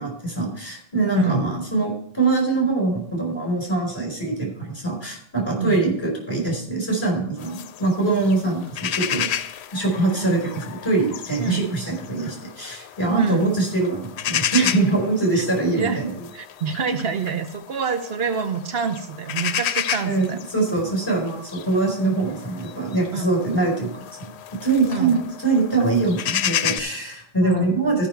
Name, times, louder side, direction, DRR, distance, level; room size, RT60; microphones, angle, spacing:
voice 1, 0.0-9.3 9.7-16.1 20.0-23.9 24.2-24.3 24.6-28.1, right 3 dB, 25° left, 0 dB, 4.6 m, -23 dB
voice 2, 1.1-1.5 5.5-5.8 10.3-10.4 11.4-11.6 13.1-13.5 15.3-15.5 15.7-16.0 16.3-20.4 23.1-23.3 24.9-25.1 27.4-27.8, right 6 dB, 70° right, 8 dB, 1.0 m, -26 dB
sound 1, 7.4-26.8, left 10 dB, 85° left, 0.8 m, -32 dB
13.5 x 5.9 x 4.5 m, 0.65 s
omnidirectional pair, 1.1 m